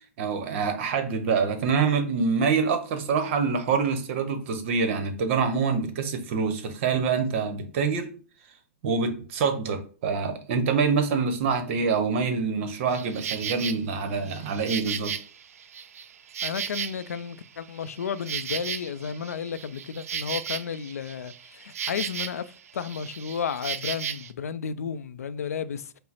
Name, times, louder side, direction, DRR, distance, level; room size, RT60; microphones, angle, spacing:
voice 1, 0.2-8.1 8.8-15.1, right 5 dB, 55° right, 0.9 m, -26 dB
Insect, 12.9-13.8 14.3-17.3 17.6-22.5 22.8-24.3, right 8 dB, 75° right, 0.4 m, -35 dB
voice 2, 16.4-22.4 22.7-26.0, left 7 dB, 85° left, 0.4 m, -33 dB
5.5 x 2.0 x 4.1 m
hypercardioid pair, 125°, 8 cm